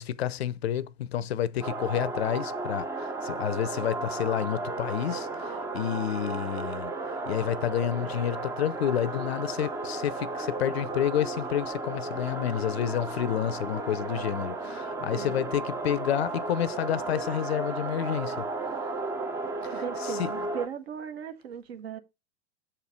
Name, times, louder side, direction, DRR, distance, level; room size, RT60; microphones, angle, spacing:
voice 1, 0.0-6.9 7.3-18.5 19.6-19.7 20.0-20.3, left 10 dB, 60° left, 0.6 m, -29 dB
sound 1, 1.6-20.7, right 3 dB, 10° right, 0.5 m, -34 dB
voice 2, 19.7-22.0, right 7 dB, 55° right, 1.1 m, -37 dB
6.8 x 4.4 x 5.0 m
figure-of-eight pair, 100°, 35 cm